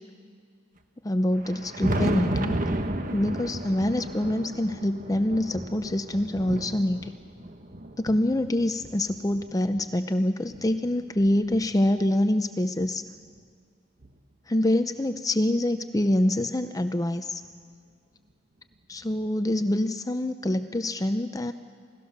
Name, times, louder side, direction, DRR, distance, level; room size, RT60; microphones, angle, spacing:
voice 1, 1.0-2.6 3.1-7.1 8.0-13.0 14.5-17.4 18.9-21.5, left 1 dB, 20° left, 10 dB, 0.6 m, -25 dB
Thunder, 1.3-9.9 10.5-12.2 13.4-13.5 14.0-14.1 16.0-16.1 17.4-17.5 19.1-19.2, right 1 dB, 45° right, 1.4 m, -33 dB
28.0 x 18.0 x 6.7 m, 2.3 s
head